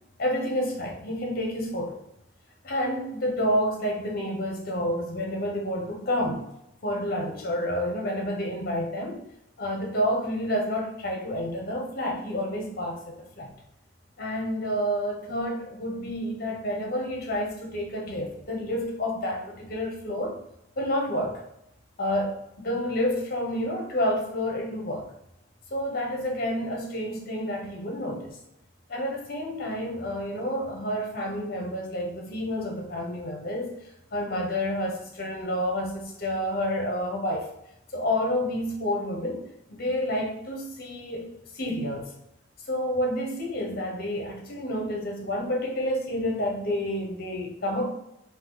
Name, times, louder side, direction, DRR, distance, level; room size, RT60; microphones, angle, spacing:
voice 1, 0.2-2.0 2.6-6.4 6.8-9.2 9.6-13.5 14.2-20.4 20.8-21.4 22.0-25.1 25.7-28.4 28.9-33.7 34.1-37.5 37.9-42.1 42.7-47.9, equal, 55° left, 1 dB, 1.2 m, -29 dB
4.4 x 2.9 x 3.9 m, 0.81 s
head